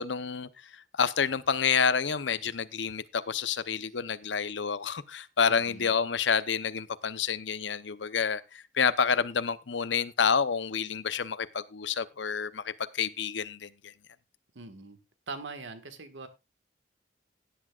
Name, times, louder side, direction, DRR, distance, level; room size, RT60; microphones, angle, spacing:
voice 1, 0.0-13.9, left 6 dB, 80° left, 0.8 m, -29 dB
voice 2, 5.5-5.9 14.5-15.0 15.3-16.3, right 3 dB, 90° right, 1.7 m, -42 dB
17.0 x 10.0 x 2.4 m
head